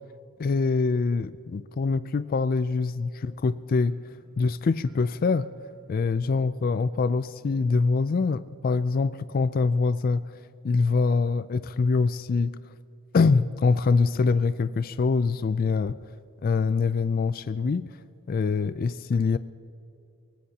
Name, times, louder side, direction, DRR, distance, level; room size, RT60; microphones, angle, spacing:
voice 1, 0.4-4.0 4.4-5.5 5.9-10.3 10.6-12.6 13.1-16.0 16.4-18.0 18.3-19.4, left 4 dB, 40° left, 0.3 m, -24 dB
sound 1, 3.7-10.6 10.9-11.4 11.8-11.9, right 1 dB, 50° right, 1.4 m, -56 dB
24.0 x 18.5 x 2.8 m
head